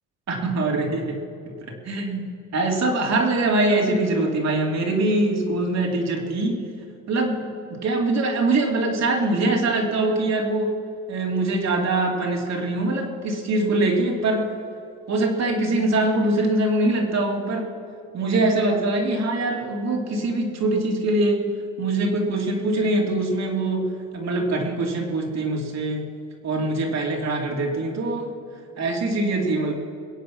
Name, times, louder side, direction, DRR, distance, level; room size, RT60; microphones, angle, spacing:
voice 1, 0.3-6.6 7.1-10.7 11.1-14.5 15.1-17.7 18.1-21.4 21.8-26.0 26.4-28.3 28.8-29.7, right 2 dB, 50° right, 1 dB, 3.0 m, -23 dB
22.5 x 8.4 x 6.3 m, 2.5 s
cardioid pair, 95°, 34 cm